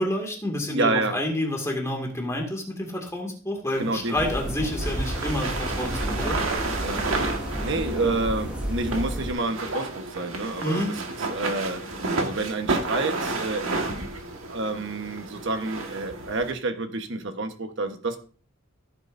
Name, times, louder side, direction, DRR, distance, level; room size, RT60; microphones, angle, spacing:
voice 1, 0.0-6.4 10.6-10.9, left 1 dB, 15° left, 1 dB, 2.2 m, -29 dB
voice 2, 0.7-1.2 3.8-4.2 6.8-7.0 7.6-11.0 11.3-11.8 12.2-13.8 14.5-18.2, right 3 dB, 65° right, 7 dB, 1.2 m, -28 dB
sound 1, 3.7-16.5, right 3 dB, 85° right, 1.7 m, -31 dB
sound 2, 4.1-9.3, equal, 5° right, 2.4 m, -31 dB
15.0 x 8.8 x 2.7 m, 0.40 s
head